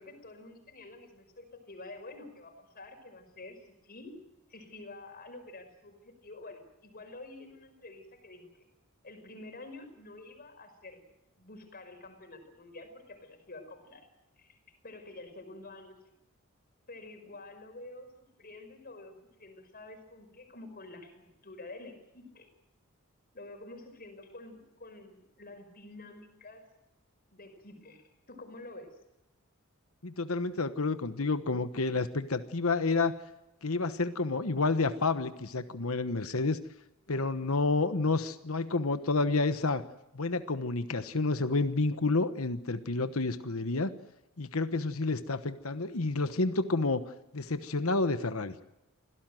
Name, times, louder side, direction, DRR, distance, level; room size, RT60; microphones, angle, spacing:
voice 1, 0.0-4.1 4.5-8.7 9.0-11.0 11.4-14.1 14.4-16.0 16.9-18.1 18.4-22.5 23.3-26.7 27.3-29.0, left 2 dB, 45° left, 6 dB, 5.3 m, -48 dB
voice 2, 30.0-33.1 33.6-36.6 37.1-39.8 40.1-43.9 44.4-47.0 47.3-48.5, left 3 dB, 70° left, 11 dB, 1.2 m, -29 dB
26.0 x 17.0 x 7.8 m, 0.91 s
head